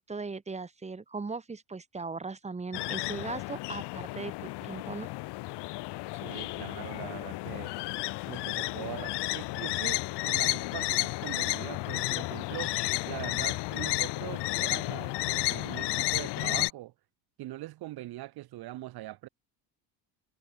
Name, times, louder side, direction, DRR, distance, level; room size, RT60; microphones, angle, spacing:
voice 1, 0.1-5.1, right 4 dB, 15° right, 6.2 m, -38 dB
sound 1, 2.7-16.7, left 20 dB, 70° left, 4.5 m, -32 dB
voice 2, 6.1-7.7 8.3-12.8 13.1-16.9 17.4-19.3, right 16 dB, 60° right, 5.8 m, -42 dB
cardioid pair, 145°, 42 cm